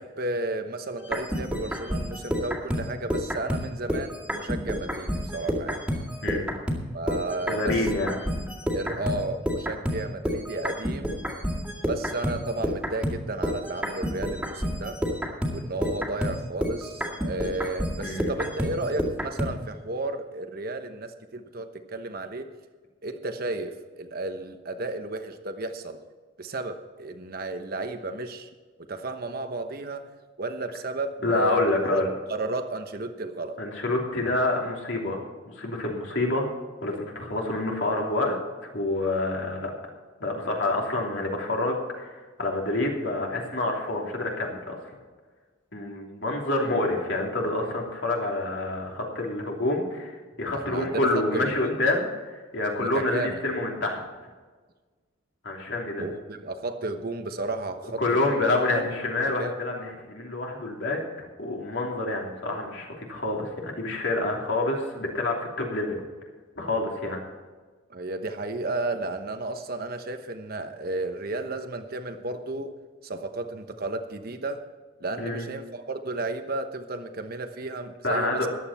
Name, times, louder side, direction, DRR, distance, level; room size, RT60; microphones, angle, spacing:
voice 1, 0.0-5.9 6.9-7.9 8.7-11.2 11.8-15.0 15.5-22.5 23.0-26.0 26.4-28.5 28.8-30.1 30.4-32.0 32.3-33.6 50.5-51.8 52.8-53.4 56.0-58.2 58.7-58.9 59.3-59.5 67.9-72.7 73.0-74.7 75.0-78.5, right 2 dB, 50° right, 7 dB, 1.1 m, -33 dB
sound 1, 1.0-6.8 7.1-19.5, equal, 5° right, 2.1 m, -29 dB
voice 2, 6.2-6.5 7.5-8.1 8.9-9.1 18.0-18.3 31.2-32.1 33.6-36.5 36.8-38.3 38.6-39.7 40.2-44.8 45.7-54.0 55.4-56.1 58.0-61.0 61.4-66.0 66.6-67.2 75.2-75.4 78.0-78.5, left 2 dB, 65° left, -1 dB, 3.1 m, -27 dB
14.5 x 11.5 x 4.3 m, 1.4 s
head